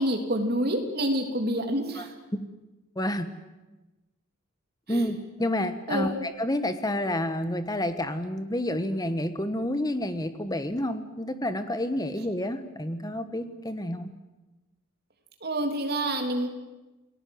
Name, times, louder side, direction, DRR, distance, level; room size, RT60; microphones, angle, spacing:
voice 1, 0.0-2.1 4.9-5.0 5.9-6.2 15.4-16.5, right 1 dB, 45° right, 4 dB, 3.2 m, -27 dB
voice 2, 3.0-3.3 4.9-14.1, left 1 dB, 20° left, 10 dB, 1.4 m, -29 dB
28.5 x 19.0 x 7.9 m, 1.1 s
head